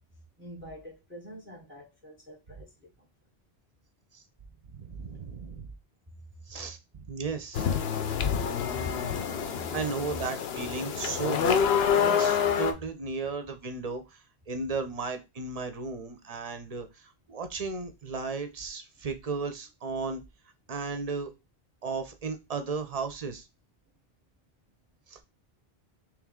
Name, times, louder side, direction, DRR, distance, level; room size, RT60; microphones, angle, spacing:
voice 1, 0.4-3.1 6.6-6.7 8.0-8.4 8.7-8.9 9.5-9.7 12.4-12.5, equal, 15° right, 0.7 m, -46 dB
voice 2, 4.7-5.7 6.5-7.7 9.7-14.2 14.5-20.2 20.7-21.3 21.8-23.4 25.1-25.2, right 4 dB, 45° right, 0.5 m, -35 dB
sound 1, 7.5-12.7, left 8 dB, 75° left, 0.8 m, -27 dB
3.2 x 3.1 x 3.6 m
omnidirectional pair, 1.1 m